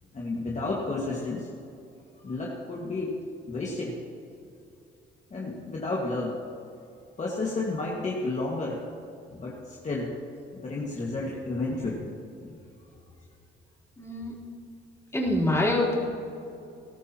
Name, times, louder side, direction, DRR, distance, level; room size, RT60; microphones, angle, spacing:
voice 1, 0.1-1.5 2.2-3.2 3.5-4.0 5.3-6.4 7.2-8.8 9.3-10.2 10.5-12.1 12.4-12.6, left 2 dB, 35° left, -4 dB, 2.0 m, -31 dB
voice 2, 14.0-14.4 15.1-16.0, left 1 dB, 15° left, -4 dB, 3.8 m, -25 dB
20.0 x 13.0 x 3.0 m, 2.6 s
cardioid pair, 90°, 20 cm